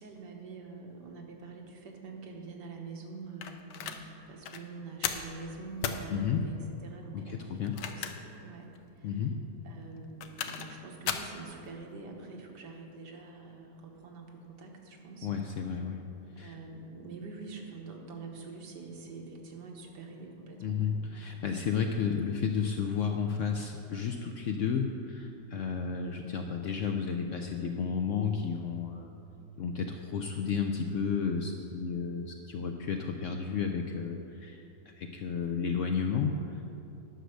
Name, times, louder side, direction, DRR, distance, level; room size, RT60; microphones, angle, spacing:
voice 1, 0.0-6.5 6.8-8.7 9.0-9.2 9.6-15.3 16.4-21.4, right 3 dB, 85° right, 1 dB, 1.8 m, -45 dB
sound 1, 3.4-4.0 4.4-4.6 5.0-5.3 5.8-6.0 7.6-8.4 8.8-8.9 10.0-10.7 11.1-11.3, left 8 dB, 90° left, 1.3 m, -35 dB
voice 2, 6.1-6.5 7.1-7.8 9.0-9.4 15.2-16.0 16.4-16.6 20.6-29.1 29.6-36.6, left 6 dB, 70° left, 4 dB, 0.7 m, -32 dB
10.0 x 6.3 x 6.5 m, 2.7 s
omnidirectional pair, 1.8 m